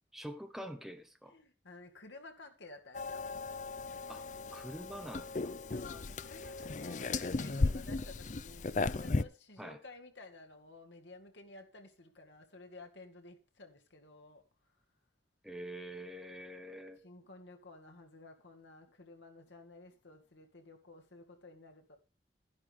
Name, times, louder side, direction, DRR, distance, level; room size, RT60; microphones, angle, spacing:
voice 1, 0.1-1.3 4.1-4.3 4.5-5.5 9.6-9.8 15.4-17.0, equal, ahead, 0.9 m, -45 dB
voice 2, 1.3-3.3 5.6-14.4 17.0-22.0, left 2 dB, 85° left, 2.1 m, -53 dB
sound 1, 2.9-9.2, left 3 dB, 40° left, 0.5 m, -36 dB
12.0 x 10.5 x 3.6 m
head